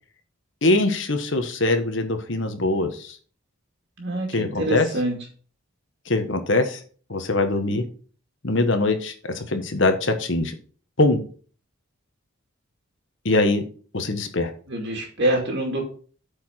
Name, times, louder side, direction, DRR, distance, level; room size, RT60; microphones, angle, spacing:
voice 1, 0.6-3.1 4.3-4.9 6.1-6.8 7.1-7.8 8.4-10.5 11.0-11.2 13.2-13.6 13.9-14.5, left 2 dB, 60° left, 7 dB, 1.4 m, -22 dB
voice 2, 4.0-5.2 14.7-15.8, right 1 dB, 55° right, 1 dB, 2.4 m, -25 dB
8.5 x 5.0 x 5.8 m, 0.42 s
head